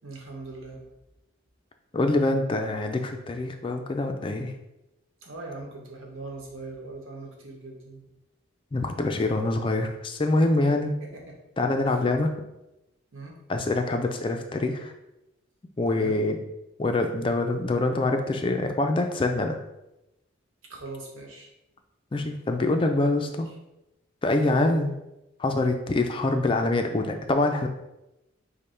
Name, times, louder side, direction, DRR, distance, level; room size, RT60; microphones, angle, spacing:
voice 1, 0.0-0.9 5.2-8.0 11.0-11.4 11.9-12.0 13.1-13.4 15.9-16.2 20.7-21.5 23.2-23.4 24.4-24.8, right 3 dB, 90° right, 1 dB, 1.0 m, -40 dB
voice 2, 1.9-4.5 8.7-10.9 11.6-12.3 13.5-14.9 15.8-16.4 16.8-19.6 22.1-23.5 24.2-24.9 25.4-27.7, left 2 dB, 25° left, 5 dB, 0.3 m, -25 dB
5.2 x 2.1 x 4.3 m, 0.92 s
head